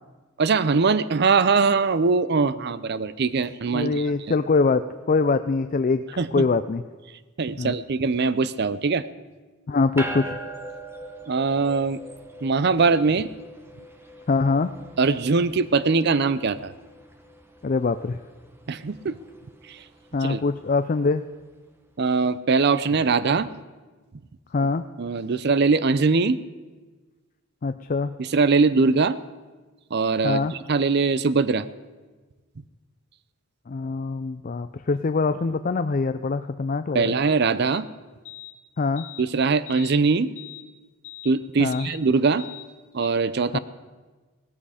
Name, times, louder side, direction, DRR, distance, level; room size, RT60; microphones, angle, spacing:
voice 1, 0.4-4.1 6.2-6.5 7.4-9.1 11.3-12.0 12.4-13.3 15.0-16.7 18.7-19.2 19.7-19.8 20.2-20.4 22.0-23.5 25.0-26.4 28.2-29.2 29.9-31.7 36.9-37.9 39.2-40.3 41.2-42.5 42.9-43.6, right 4 dB, 50° right, 16 dB, 0.5 m, -22 dB
voice 2, 3.7-6.0 6.3-6.8 7.6-7.7 9.7-10.3 14.3-14.7 17.6-18.2 20.1-21.2 24.5-24.8 27.6-28.1 30.2-30.5 33.7-37.2 38.8-39.0 41.6-41.9 43.5-43.6, left 4 dB, 40° left, 10 dB, 0.4 m, -23 dB
sound 1, 10.0-21.6, right 2 dB, 10° right, 1.1 m, -42 dB
sound 2, 37.7-37.8 38.2-38.5 39.0-39.2 39.7-39.9 40.4-40.6 41.0-41.3 41.7-42.0 42.4-42.7 43.0-43.1, left 17 dB, 65° left, 2.7 m, -41 dB
17.0 x 14.0 x 5.0 m, 1.3 s
head